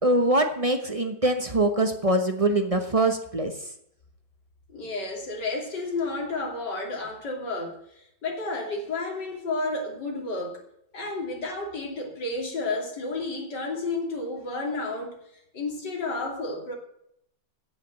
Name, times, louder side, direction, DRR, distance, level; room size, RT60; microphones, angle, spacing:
voice 1, 0.0-3.5, right 1 dB, 25° right, 6 dB, 0.8 m, -23 dB
voice 2, 4.7-7.8 8.2-10.6 10.9-15.1 15.5-16.7, left 3 dB, 60° left, 1 dB, 3.4 m, -31 dB
15.5 x 6.2 x 7.8 m, 0.74 s
omnidirectional pair, 2.1 m